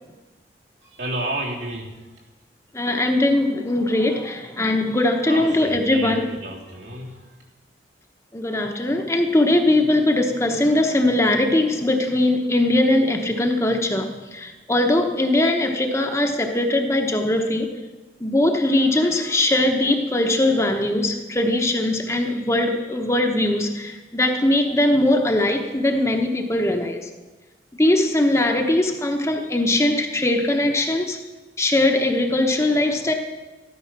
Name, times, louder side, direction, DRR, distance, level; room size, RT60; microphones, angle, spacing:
voice 1, 0.8-2.3 5.3-7.3, right 1 dB, 85° right, -3 dB, 3.3 m, -32 dB
voice 2, 2.7-6.3 8.3-17.7 18.2-27.1 27.7-31.2 31.6-33.1, left 1 dB, 15° left, 4 dB, 1.0 m, -20 dB
14.0 x 12.5 x 6.0 m, 1.2 s
head